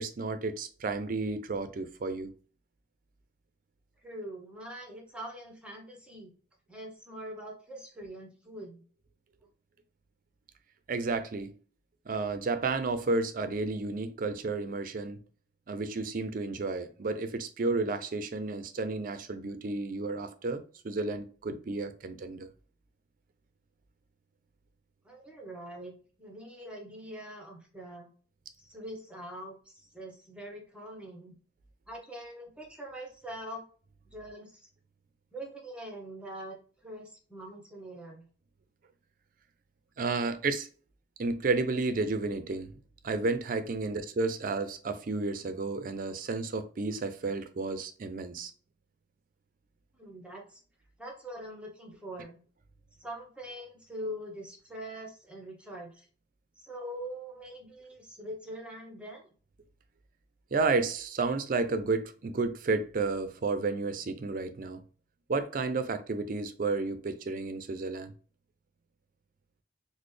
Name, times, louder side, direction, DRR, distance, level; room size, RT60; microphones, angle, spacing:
voice 1, 0.0-2.3 10.9-11.5 12.1-15.2 15.7-22.5 40.0-40.7 41.2-42.7 43.0-48.5 60.5-64.8 65.3-68.1, right 3 dB, 50° right, 0.4 m, -32 dB
voice 2, 4.0-6.3 6.7-8.8 25.0-28.1 28.6-31.3 31.9-33.7 34.1-34.7 35.3-38.3 49.9-50.6 51.0-52.4 53.0-56.1 56.6-59.3, right 1 dB, 5° right, 0.9 m, -43 dB
3.9 x 2.1 x 3.2 m
head